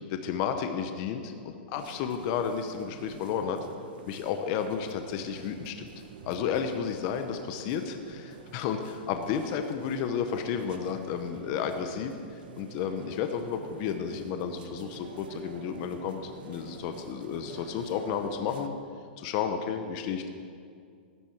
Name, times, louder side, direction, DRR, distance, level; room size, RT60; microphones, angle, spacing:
voice 1, 0.1-3.6 4.1-5.9 6.2-12.1 12.6-18.7 19.2-20.3, left 7 dB, 30° left, 7 dB, 0.7 m, -32 dB
sound 1, 1.7-18.7, right 6 dB, 60° right, 1.0 m, -48 dB
13.5 x 7.5 x 8.5 m, 2.3 s
supercardioid pair, 170°, 6 cm